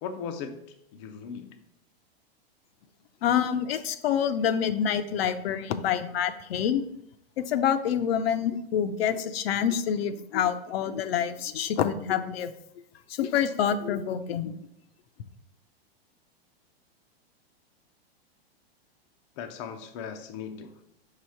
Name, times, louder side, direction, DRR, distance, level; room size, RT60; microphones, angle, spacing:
voice 1, 0.0-1.5 19.4-20.8, left 6 dB, 30° left, 6 dB, 0.4 m, -38 dB
voice 2, 3.2-6.8 7.4-12.5 13.2-14.6, left 8 dB, 70° left, 10 dB, 0.6 m, -27 dB
4.9 x 3.4 x 5.5 m, 0.77 s
supercardioid pair, 155°, 31 cm